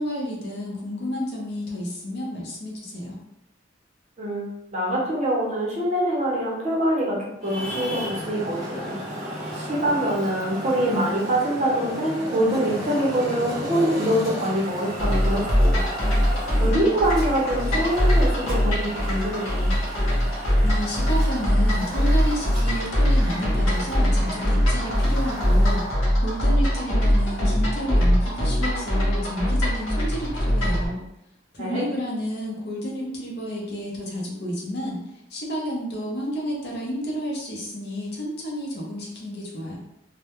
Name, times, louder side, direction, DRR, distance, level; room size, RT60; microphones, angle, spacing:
voice 1, 0.0-3.2 20.6-31.0 31.5-39.8, equal, 55° left, -3 dB, 0.6 m, -31 dB
voice 2, 4.2-9.0 9.5-15.8 16.6-19.7 31.6-31.9, right 1 dB, 35° right, -4 dB, 0.6 m, -24 dB
Traffic noise roadway noise, 7.4-26.1, equal, ahead, 0.8 m, -35 dB
sound 1, 15.0-30.9, equal, 85° left, 0.7 m, -22 dB
2.2 x 2.0 x 2.9 m, 0.82 s
head